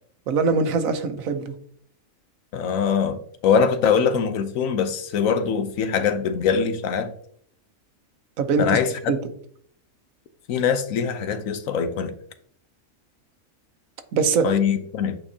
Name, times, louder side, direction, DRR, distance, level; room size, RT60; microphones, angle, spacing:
voice 1, 0.3-1.5 8.4-8.8 9.1-9.2 14.1-14.5, right 5 dB, 85° right, 8 dB, 1.2 m, -22 dB
voice 2, 2.5-7.1 8.6-9.1 10.5-12.1 14.4-15.2, left 6 dB, 80° left, 10 dB, 1.1 m, -22 dB
8.7 x 4.5 x 2.7 m, 0.62 s
omnidirectional pair, 1.4 m